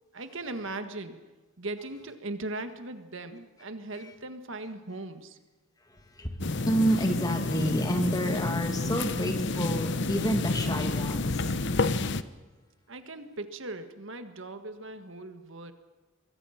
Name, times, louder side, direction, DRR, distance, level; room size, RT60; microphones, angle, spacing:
voice 1, 0.1-1.2 1.6-5.4 12.9-15.7, right 2 dB, 65° right, 9 dB, 1.7 m, -39 dB
voice 2, 5.8-11.5, equal, 15° left, 5 dB, 2.3 m, -30 dB
sound 1, 6.4-12.2, left 2 dB, 55° left, 0.9 m, -29 dB
25.0 x 22.5 x 5.9 m, 1.2 s
head